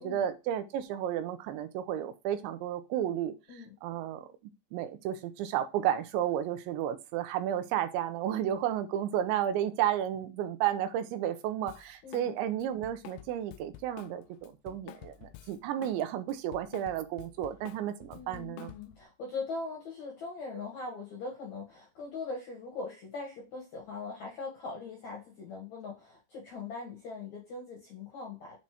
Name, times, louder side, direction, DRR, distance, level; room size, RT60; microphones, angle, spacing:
voice 1, 0.0-4.3 4.7-18.7, right 11 dB, 85° right, 3.1 m, -32 dB
Drum kit, 11.7-12.3 12.6-16.0 16.3-19.0, left 14 dB, 80° left, 2.7 m, -50 dB
voice 2, 12.0-12.3 18.1-28.6, left 3 dB, 60° left, 1.9 m, -41 dB
7.4 x 4.2 x 4.7 m
omnidirectional pair, 5.3 m